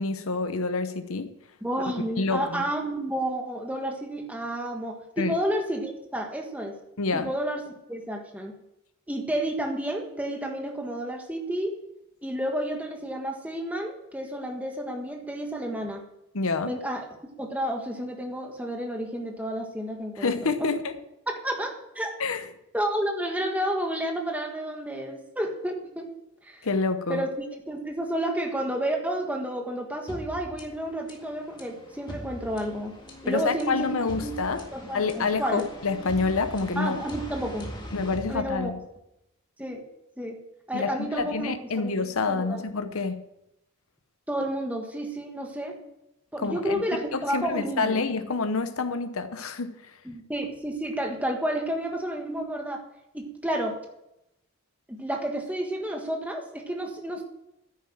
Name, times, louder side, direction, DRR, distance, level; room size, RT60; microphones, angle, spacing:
voice 1, 0.0-1.3 2.2-2.6 5.2-5.4 7.0-7.3 16.3-16.8 20.2-21.0 22.2-22.5 26.6-27.3 33.3-34.7 34.9-37.0 37.9-38.8 40.7-43.2 46.4-50.0, left 4 dB, 75° left, 0.8 m, -28 dB
voice 2, 1.6-6.7 7.1-7.6 7.9-8.5 9.1-11.7 12.2-16.0 16.6-17.1 17.4-20.3 20.6-20.7 21.3-22.1 22.7-26.1 26.4-26.7 27.1-27.3 27.7-32.9 33.2-34.3 34.7-35.6 36.8-37.7 38.3-38.7 39.6-39.8 40.2-40.4 40.7-41.9 42.3-42.6 44.3-45.8 46.3-48.0 50.0-52.8 53.1-53.8 54.9-57.2, right 1 dB, 5° right, 1.5 m, -31 dB
sound 1, 30.1-39.0, equal, 20° left, 1.8 m, -41 dB
10.5 x 9.6 x 7.4 m
head